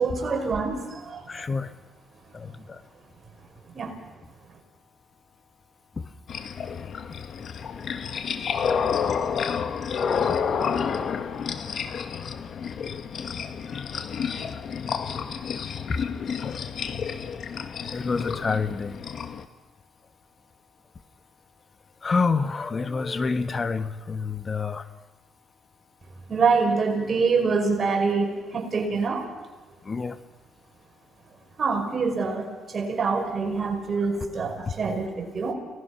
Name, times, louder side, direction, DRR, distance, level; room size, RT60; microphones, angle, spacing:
voice 1, 0.0-1.3 3.7-3.9 26.3-29.3 31.6-35.5, right 4 dB, 45° right, 3 dB, 5.3 m, -25 dB
voice 2, 1.3-1.7 2.3-2.8 6.0-6.1 10.3-10.4 10.7-10.8 13.7-14.1 15.9-16.0 17.9-19.0 22.0-24.9 29.8-30.2, left 4 dB, 35° left, 11 dB, 1.3 m, -28 dB
sound 1, 6.3-19.5, left 6 dB, 60° left, 1.5 m, -30 dB
29.5 x 19.0 x 5.9 m, 1.2 s
supercardioid pair, 70°, 0 cm